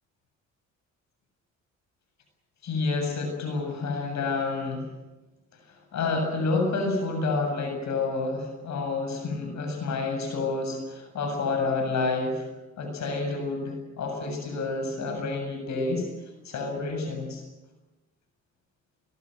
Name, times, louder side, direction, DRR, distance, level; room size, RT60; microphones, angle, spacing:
voice 1, 2.6-4.9 5.7-12.5 12.8-16.1 16.4-17.4, left 3 dB, 65° left, 4 dB, 7.7 m, -29 dB
24.5 x 21.0 x 7.9 m, 1.1 s
cardioid pair, 90°, 30 cm